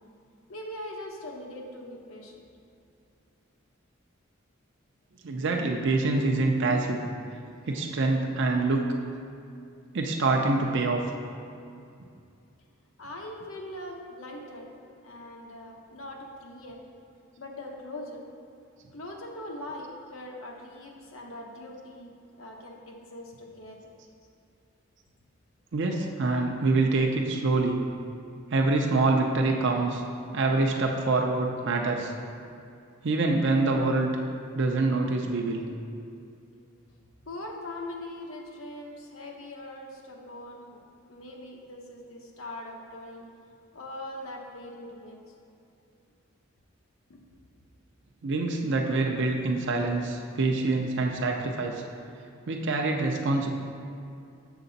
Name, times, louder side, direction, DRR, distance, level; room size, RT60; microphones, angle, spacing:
voice 1, 0.5-2.4 13.0-14.7 15.0-16.8 17.4-18.3 18.9-22.1 22.4-23.8 36.6-36.7 37.2-40.8 41.1-43.3 43.7-45.2 45.9-46.0 47.1-47.2, left 1 dB, 80° left, 0 dB, 1.0 m, -41 dB
voice 2, 5.2-7.0 7.7-8.8 9.9-11.1 25.7-27.8 28.5-30.0 30.3-32.1 33.0-34.2 34.5-35.6 48.2-51.8 52.5-53.5, right 3 dB, 60° right, 1 dB, 0.6 m, -25 dB
6.9 x 6.6 x 4.0 m, 2.5 s
head